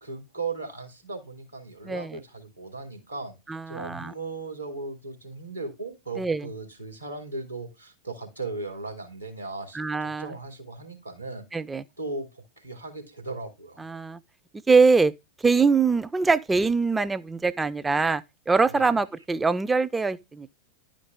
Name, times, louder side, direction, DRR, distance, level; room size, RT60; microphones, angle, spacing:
voice 1, 0.0-3.3 3.7-11.4 12.0-13.8 18.7-18.9, right 3 dB, 90° right, 2.9 m, -37 dB
voice 2, 1.8-2.2 3.5-4.1 6.2-6.5 9.7-10.3 11.5-11.8 13.8-14.2 14.7-15.1 15.4-20.5, right 4 dB, 10° right, 0.4 m, -23 dB
11.0 x 5.1 x 3.5 m
figure-of-eight pair, 90°, 0 cm